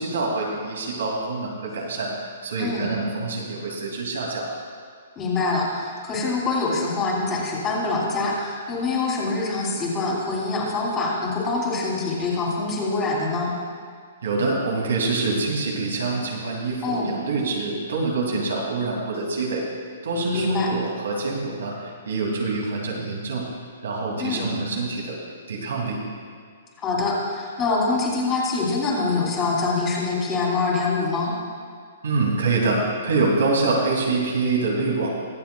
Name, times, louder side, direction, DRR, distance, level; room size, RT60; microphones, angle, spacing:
voice 1, 0.0-2.1 2.4-4.5 14.2-19.7 20.0-23.5 23.8-25.2 25.5-26.0 32.0-35.1, right 3 dB, 80° right, -1 dB, 2.5 m, -25 dB
voice 2, 2.6-2.9 5.1-13.5 16.8-17.1 20.3-20.7 24.2-24.5 26.8-31.3, left 3 dB, 20° left, -5 dB, 3.0 m, -25 dB
23.0 x 7.6 x 2.3 m, 2.1 s
hypercardioid pair, 155°, 0 cm